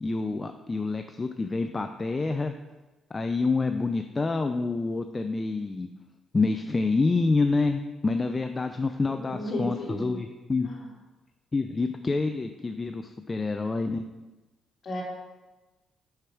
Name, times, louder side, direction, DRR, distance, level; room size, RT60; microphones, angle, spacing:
voice 1, 0.0-2.5 3.1-5.9 6.3-10.7 11.5-14.1, left 3 dB, 25° left, 7 dB, 0.4 m, -27 dB
voice 2, 9.1-10.2 10.6-10.8 14.8-15.0, left 1 dB, 45° left, -4 dB, 2.8 m, -34 dB
6.4 x 6.0 x 4.9 m, 1.1 s
cardioid pair, 90°, 0 cm